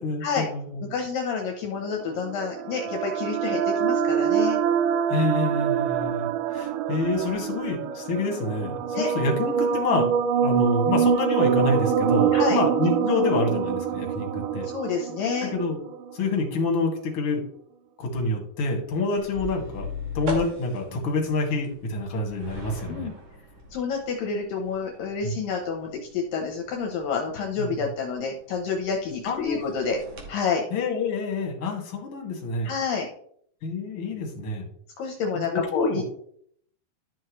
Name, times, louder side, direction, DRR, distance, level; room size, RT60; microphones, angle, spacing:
voice 1, 0.0-0.8 5.1-10.1 10.3-14.7 15.5-15.8 16.1-17.4 18.0-19.9 20.1-23.1 25.2-25.4 27.6-27.7 29.2-29.6 30.7-32.7 33.6-34.7 35.5-36.0, left 3 dB, 45° left, -1 dB, 2.4 m, -27 dB
voice 2, 0.8-4.6 8.9-9.1 12.3-12.6 14.6-15.5 22.9-23.1 23.7-30.0 30.3-30.6 32.6-33.1 35.0-36.0, left 5 dB, 70° left, 1 dB, 2.5 m, -28 dB
sound 1, 2.0-16.1, right 8 dB, 85° right, 1.9 m, -25 dB
sound 2, 19.1-30.3, left 1 dB, 50° right, 2.6 m, -40 dB
12.0 x 6.3 x 3.1 m, 0.65 s
omnidirectional pair, 4.5 m